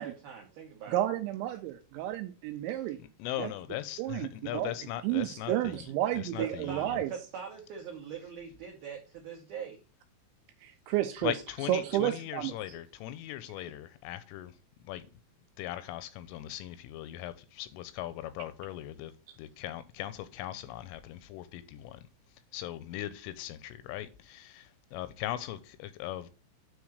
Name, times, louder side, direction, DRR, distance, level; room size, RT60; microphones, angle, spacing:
voice 1, 0.0-1.0 5.5-5.6 6.4-9.8, right 7 dB, 65° right, 2.5 m, -41 dB
voice 2, 0.9-3.0 3.4-3.5 4.0-4.7 5.0-7.1 10.6-11.3 11.7-12.5, right 13 dB, 85° right, 2.6 m, -31 dB
voice 3, 3.0-5.9 6.1-7.0 11.2-15.1 15.6-22.1 22.5-26.3, left 13 dB, 85° left, 3.0 m, -39 dB
9.6 x 3.6 x 6.4 m
omnidirectional pair, 6.0 m